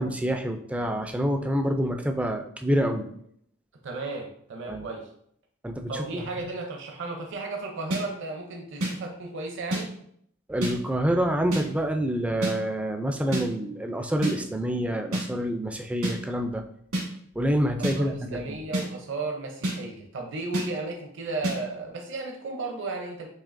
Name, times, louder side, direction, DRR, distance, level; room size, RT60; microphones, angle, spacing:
voice 1, 0.0-3.1 4.7-4.9 5.6-6.2 10.5-16.6 17.4-18.6, equal, 5° right, 5 dB, 0.3 m, -27 dB
voice 2, 3.8-5.1 5.9-9.9 17.8-23.3, right 3 dB, 60° right, 2 dB, 0.6 m, -34 dB
sound 1, 7.9-8.0 8.8-8.9 9.7-9.8 10.6-10.7 11.5-11.6 12.4-12.5 13.3-13.4 14.2-14.3 15.1-15.2 16.0-16.1 16.9-17.0 17.8-17.9 18.7-18.9 19.6-19.8 20.5-20.7 21.4-21.6, right 1 dB, 90° right, 1.8 m, -27 dB
7.2 x 2.8 x 2.5 m, 0.68 s
head